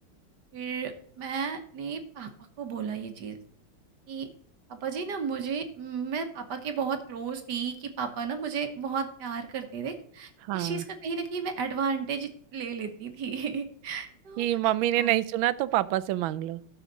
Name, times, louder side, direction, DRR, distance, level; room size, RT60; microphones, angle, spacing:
voice 1, 0.5-2.3 2.6-3.4 4.1-4.3 4.7-14.4 14.9-15.2, right 6 dB, 60° right, 7 dB, 1.5 m, -33 dB
voice 2, 10.5-10.8 14.4-16.6, right 14 dB, 80° right, 15 dB, 1.3 m, -26 dB
12.0 x 7.0 x 3.9 m, 0.62 s
omnidirectional pair, 2.3 m